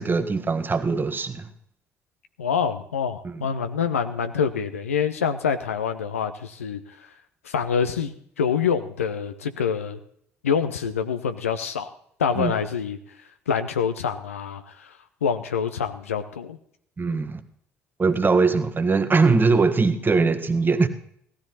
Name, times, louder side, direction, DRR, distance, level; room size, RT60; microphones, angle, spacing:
voice 1, 0.0-1.5 3.2-3.5 12.4-12.5 17.0-17.4 18.0-20.9, right 4 dB, 25° right, 1.5 m, -21 dB
voice 2, 2.4-6.8 7.4-10.0 10.4-11.9 12.2-13.0 13.5-14.9 15.2-16.6, left 7 dB, 80° left, 0.8 m, -26 dB
17.0 x 13.0 x 4.1 m
figure-of-eight pair, 50°, 7 cm